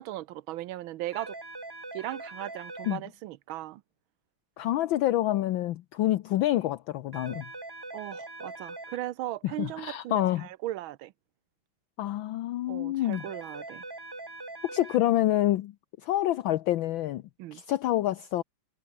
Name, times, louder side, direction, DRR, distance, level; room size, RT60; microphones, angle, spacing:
voice 1, 0.0-1.4 1.9-3.8 7.9-11.1 12.7-13.8 17.4-17.6, right 15 dB, 70° right, 1.5 m, -37 dB
sound 1, 1.1-3.0 7.1-9.0 13.1-15.0, right 2 dB, 15° right, 1.0 m, -42 dB
voice 2, 4.6-7.4 9.6-10.5 12.0-13.2 14.7-15.7 16.0-17.2 17.5-18.4, left 14 dB, 70° left, 1.4 m, -27 dB
omnidirectional pair, 2.4 m